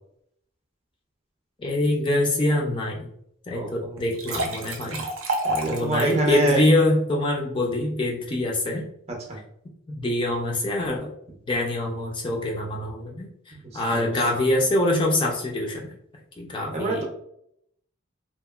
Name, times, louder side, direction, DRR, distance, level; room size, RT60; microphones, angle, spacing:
voice 1, 1.6-3.1 3.5-5.0 5.7-8.8 9.9-11.1 11.5-15.9 16.4-17.0, left 1 dB, 25° left, -1 dB, 0.4 m, -24 dB
voice 2, 3.5-4.0 5.4-6.6 9.3-9.4 13.9-14.1 16.7-17.0, right 2 dB, 30° right, 1 dB, 0.5 m, -26 dB
sound 1, 4.0-6.4, right 1 dB, 75° right, 0.5 m, -29 dB
2.8 x 2.4 x 2.3 m, 0.72 s
head